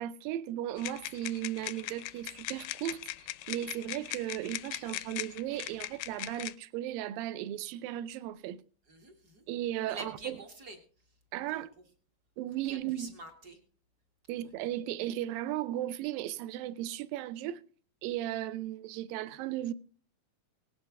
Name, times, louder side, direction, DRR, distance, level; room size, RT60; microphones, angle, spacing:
voice 1, 0.0-8.6 9.5-10.4 11.3-11.7 12.4-13.1 14.3-17.6 18.0-19.7, right 13 dB, 80° right, 2.4 m, -36 dB
sound 1, 0.8-6.5, left 16 dB, 80° left, 2.0 m, -40 dB
voice 2, 8.9-9.4 9.9-10.8 11.5-11.6 12.6-13.6 14.3-14.5, right 2 dB, 45° right, 1.2 m, -46 dB
18.5 x 9.0 x 3.5 m
omnidirectional pair, 4.2 m